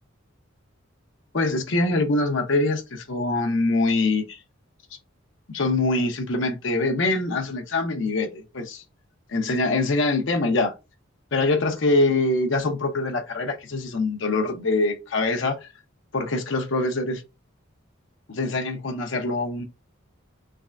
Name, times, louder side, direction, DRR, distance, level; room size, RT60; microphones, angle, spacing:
voice 1, 1.3-4.4 5.5-8.8 9.3-10.7 11.3-15.7 16.1-17.2 18.3-19.6, left 2 dB, 65° left, 0.7 m, -24 dB
3.5 x 3.2 x 2.4 m
head